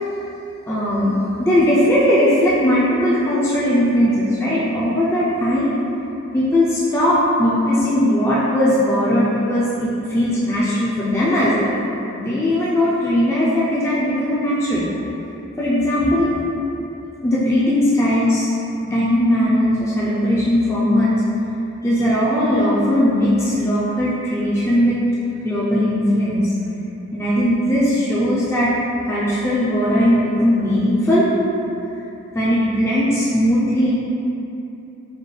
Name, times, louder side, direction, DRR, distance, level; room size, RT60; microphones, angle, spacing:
voice 1, 0.7-5.8 6.3-11.7 12.2-14.9 15.6-16.4 17.2-18.5 18.8-21.1 21.8-25.0 25.4-26.4 27.1-28.7 29.1-31.3 32.3-33.9, left 1 dB, 10° left, -9 dB, 0.4 m, -18 dB
5.1 x 2.3 x 3.2 m, 2.9 s
head